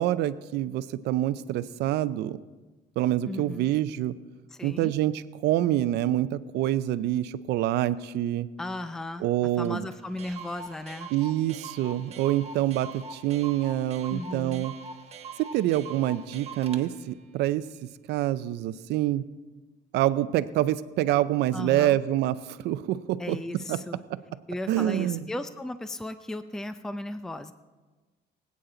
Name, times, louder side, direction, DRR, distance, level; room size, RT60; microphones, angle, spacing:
voice 1, 0.0-2.4 3.0-4.1 4.6-8.5 9.2-9.9 11.1-14.7 15.5-17.7 18.1-19.3 19.9-23.4 23.7-23.8 24.7-25.3, right 13 dB, 80° right, 14 dB, 0.6 m, -26 dB
voice 2, 3.3-3.7 4.5-4.9 8.6-9.3 9.6-11.1 14.1-14.7 21.5-22.0 23.2-24.0 24.5-27.5, left 1 dB, 5° left, 11 dB, 0.5 m, -36 dB
Clock, 9.6-9.7 9.9-10.0 10.2-16.8, right 4 dB, 40° right, 1.2 m, -43 dB
23.0 x 8.5 x 3.9 m, 1.3 s
cardioid pair, 110°, 17 cm